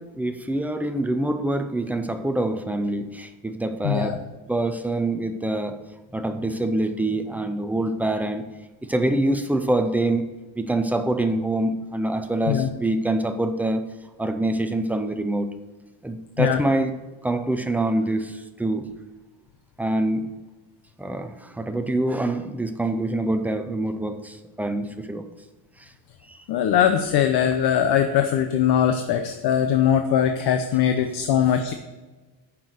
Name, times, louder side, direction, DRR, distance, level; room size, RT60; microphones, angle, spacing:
voice 1, 0.0-4.2 4.5-5.8 6.1-8.4 8.8-10.3 10.6-13.8 14.2-15.5 16.0-16.9 17.2-18.9 19.8-20.3 21.0-25.3 26.3-26.4, right 1 dB, 5° right, 7 dB, 0.3 m, -25 dB
voice 2, 3.8-4.2 12.5-12.7 16.4-16.6 26.5-31.7, left 9 dB, 55° left, 7 dB, 0.7 m, -21 dB
9.1 x 5.9 x 6.4 m, 1.2 s
cardioid pair, 165°, 46 cm